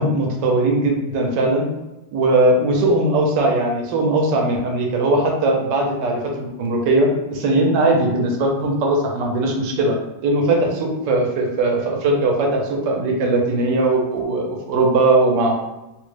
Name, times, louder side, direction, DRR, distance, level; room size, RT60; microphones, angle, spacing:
voice 1, 0.0-1.7 2.1-10.0 10.2-15.5, right 2 dB, 75° right, 1 dB, 1.3 m, -19 dB
3.7 x 2.1 x 3.2 m, 0.99 s
omnidirectional pair, 2.0 m